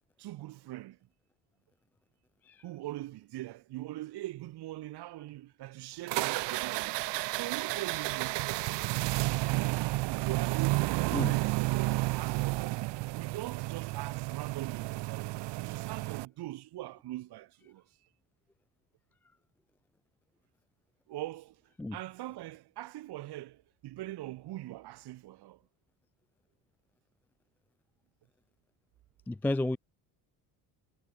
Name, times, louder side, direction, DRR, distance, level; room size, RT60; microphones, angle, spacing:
voice 1, 0.2-1.0 2.6-7.0 7.4-8.4 10.2-17.9 21.1-21.6 21.9-25.6, right 16 dB, 70° right, 7.1 m, -42 dB
sound 1, 6.1-16.3, right 20 dB, 90° right, 1.7 m, -31 dB
voice 2, 29.3-29.8, left 2 dB, 5° left, 0.3 m, -31 dB
cardioid pair, 165°, 41 cm